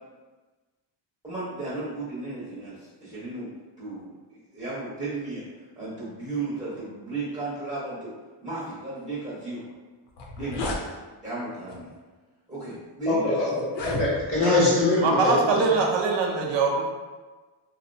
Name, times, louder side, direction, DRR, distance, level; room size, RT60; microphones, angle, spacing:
voice 1, 1.2-3.5 3.8-5.4 5.7-8.1 8.4-9.6 10.3-11.0 11.2-11.9 12.5-13.4, right 2 dB, 10° right, -10 dB, 0.8 m, -34 dB
sound 1, 9.7-9.8 10.1-10.8 11.7-11.9 12.6-12.7 13.6-14.5, left 1 dB, 60° left, 0.5 m, -32 dB
voice 2, 13.1-15.7, left 2 dB, 10° left, -7 dB, 0.9 m, -23 dB
voice 3, 15.0-16.8, right 4 dB, 60° right, 1 dB, 0.6 m, -22 dB
2.7 x 2.0 x 2.6 m, 1.3 s
cardioid pair, 105°, 50 cm